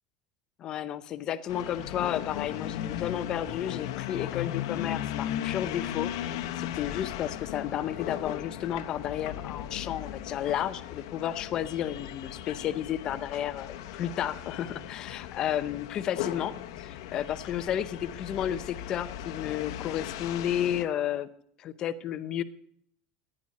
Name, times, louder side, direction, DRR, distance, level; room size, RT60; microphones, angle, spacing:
voice 1, 0.6-6.1 6.6-21.3 21.6-22.4, left 10 dB, 30° left, 14 dB, 0.7 m, -32 dB
sound 1, 1.5-20.8, left 12 dB, 75° left, 1.0 m, -37 dB
14.5 x 11.0 x 4.2 m, 0.64 s
cardioid pair, 180°, 2 cm